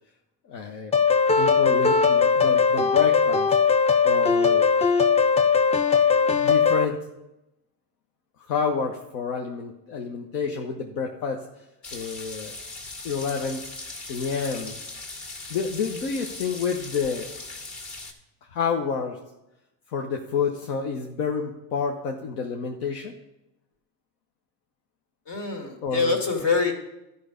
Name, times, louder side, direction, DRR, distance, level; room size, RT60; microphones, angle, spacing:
voice 1, 0.5-0.9 1.4-3.5 4.0-4.7 6.3-7.0 8.4-11.4 11.9-12.5 13.0-13.6 14.1-14.8 15.5-17.3 18.5-19.2 19.9-23.2 25.8-26.2, left 5 dB, 80° left, 2 dB, 1.0 m, -29 dB
sound 1, 0.9-6.9, left 5 dB, 15° left, 0.4 m, -19 dB
sound 2, 11.8-18.1, left 2 dB, 40° left, 2.1 m, -39 dB
voice 2, 25.3-26.7, left 5 dB, 60° left, 2 dB, 2.3 m, -24 dB
12.0 x 5.4 x 5.1 m, 0.92 s
hypercardioid pair, 75°, 48 cm